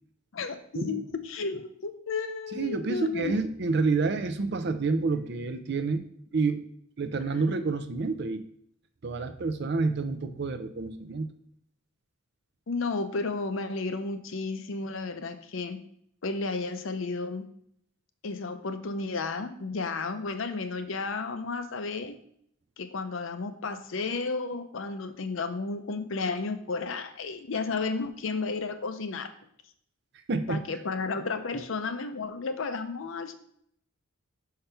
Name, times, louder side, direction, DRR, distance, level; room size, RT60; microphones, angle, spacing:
voice 1, 0.3-3.3 12.7-15.8 16.2-17.4 18.2-22.2 22.8-29.3 30.5-33.3, left 4 dB, 65° left, 9 dB, 0.6 m, -32 dB
voice 2, 2.5-6.0 6.3-6.7 7.0-8.4 9.0-11.3 30.3-30.6 31.5-31.6, right 4 dB, 50° right, 9 dB, 0.5 m, -28 dB
5.7 x 5.6 x 3.3 m, 0.68 s
head